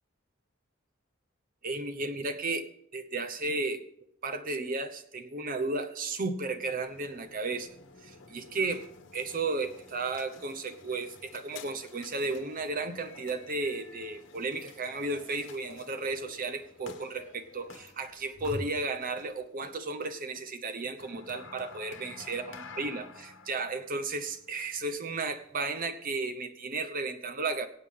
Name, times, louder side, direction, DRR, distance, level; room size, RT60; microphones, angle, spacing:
voice 1, 1.6-3.8 4.2-7.7 8.0-8.9 9.1-27.7, right 3 dB, 45° right, 7 dB, 0.9 m, -34 dB
sound 1, 6.5-25.6, left 3 dB, 70° left, 1.5 m, -49 dB
24.0 x 8.5 x 3.7 m, 0.79 s
head